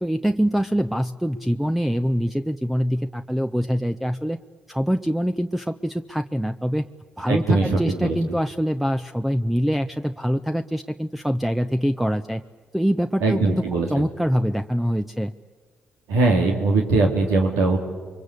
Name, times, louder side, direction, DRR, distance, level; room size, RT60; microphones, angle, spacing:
voice 1, 0.0-4.4 4.7-6.9 7.2-12.4 12.7-13.6 13.9-15.3, equal, 5° right, 9 dB, 0.9 m, -24 dB
voice 2, 7.3-8.2 13.2-13.9 16.1-17.8, right 3 dB, 85° right, 0 dB, 3.1 m, -20 dB
29.0 x 23.5 x 8.3 m, 1.5 s
hypercardioid pair, 50°, 4 cm